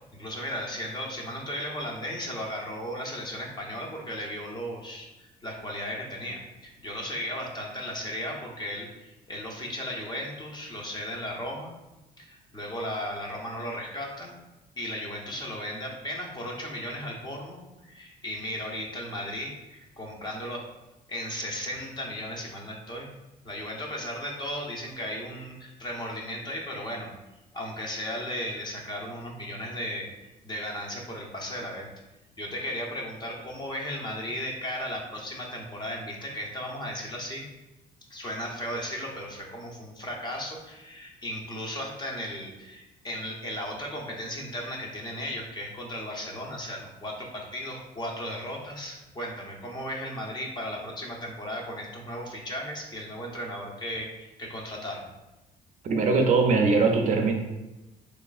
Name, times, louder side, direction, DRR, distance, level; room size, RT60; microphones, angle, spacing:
voice 1, 0.1-11.7 12.2-14.3 14.8-20.6 21.1-23.1 23.4-27.1 27.5-31.9 32.4-37.4 38.1-55.1, equal, 25° left, -1 dB, 0.7 m, -36 dB
voice 2, 55.8-57.3, right 4 dB, 45° right, 2 dB, 0.5 m, -21 dB
3.7 x 3.1 x 2.4 m, 1.0 s
cardioid pair, 110°, 17 cm